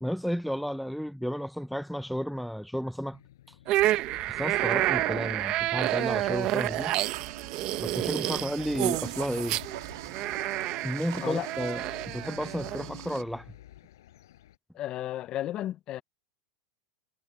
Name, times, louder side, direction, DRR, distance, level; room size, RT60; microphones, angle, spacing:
voice 1, 0.0-3.2 4.3-6.9 7.8-9.6 10.8-13.5, equal, ahead, 0.5 m, -32 dB
sound 1, 3.1-14.6, left 13 dB, 90° left, 5.4 m, -52 dB
sound 2, 3.7-12.8, right 16 dB, 40° right, 1.0 m, -29 dB
sound 3, 5.8-13.2, right 16 dB, 75° right, 1.9 m, -43 dB
voice 2, 14.7-16.0, left 13 dB, 35° left, 0.7 m, -33 dB
supercardioid pair, 140°, 2 cm